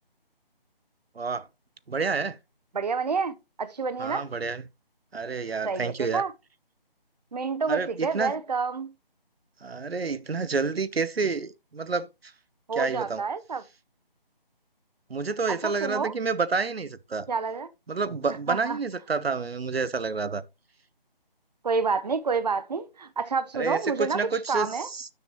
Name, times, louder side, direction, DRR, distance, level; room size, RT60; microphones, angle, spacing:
voice 1, 1.1-1.5 1.9-2.4 4.0-4.6 5.1-6.2 7.7-8.4 9.6-12.3 12.7-13.3 15.1-17.3 17.9-20.4 23.5-25.1, right 4 dB, 85° right, 0.8 m, -29 dB
voice 2, 2.7-4.3 5.6-6.3 7.3-8.9 12.7-13.6 15.6-16.1 17.3-17.7 18.5-18.8 21.6-24.9, right 5 dB, 45° right, 0.7 m, -29 dB
9.7 x 7.1 x 3.0 m
figure-of-eight pair, 160°, 30 cm